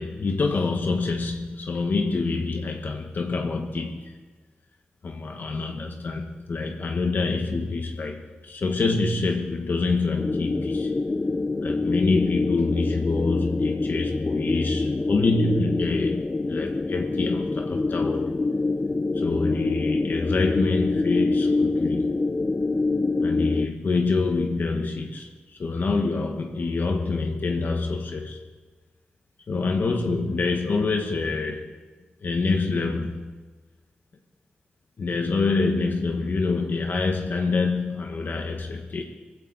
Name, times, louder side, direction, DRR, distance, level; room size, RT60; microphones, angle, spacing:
voice 1, 0.0-4.1 5.0-10.9 11.6-18.3 19.1-22.1 23.2-28.4 29.5-31.7 32.2-33.2 35.0-39.0, left 3 dB, 55° left, 3 dB, 1.4 m, -26 dB
sound 1, 10.2-23.7, left 3 dB, 25° left, 0.4 m, -26 dB
19.5 x 15.5 x 4.2 m, 1.4 s
wide cardioid pair, 90°, 4 cm